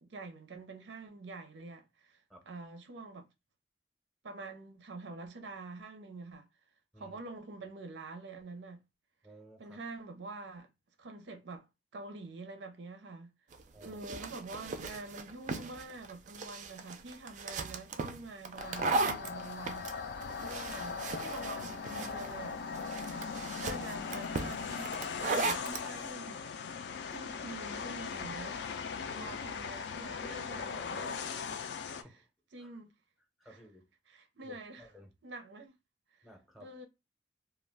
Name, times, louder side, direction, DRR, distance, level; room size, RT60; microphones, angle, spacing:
voice 1, 0.0-3.3 4.2-6.5 7.0-8.8 9.6-10.7 11.0-11.7 11.9-13.3 13.8-19.9 20.4-23.1 23.6-26.5 27.1-28.6 29.1-31.5 32.0-32.1 32.5-32.9 33.5-33.6 34.1-34.9 35.2-35.7 36.6-36.9, right 2 dB, 90° right, 0.6 m, -46 dB
voice 2, 9.2-9.8 13.7-14.0 29.0-29.4 31.8-32.3 32.6-32.7 33.4-33.9 34.4-35.1 36.2-36.8, equal, ahead, 0.6 m, -56 dB
sound 1, 13.5-25.9, right 3 dB, 45° right, 0.3 m, -37 dB
sound 2, 18.6-32.0, left 5 dB, 65° left, 0.3 m, -39 dB
2.3 x 2.1 x 3.3 m
head